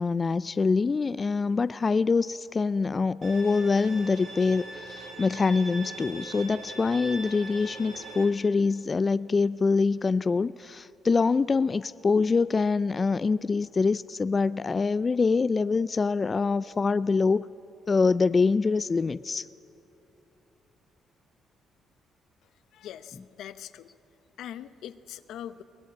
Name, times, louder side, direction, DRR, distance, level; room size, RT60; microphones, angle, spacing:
voice 1, 0.0-17.4 17.9-19.5, left 4 dB, 30° left, 16 dB, 0.4 m, -25 dB
Bowed string instrument, 3.2-8.2, right 2 dB, 70° right, 7.4 m, -41 dB
voice 2, 22.7-23.9 24.4-25.6, left 10 dB, 80° left, 12 dB, 0.9 m, -42 dB
23.0 x 18.0 x 8.6 m, 3.0 s
cardioid pair, 90°, 0 cm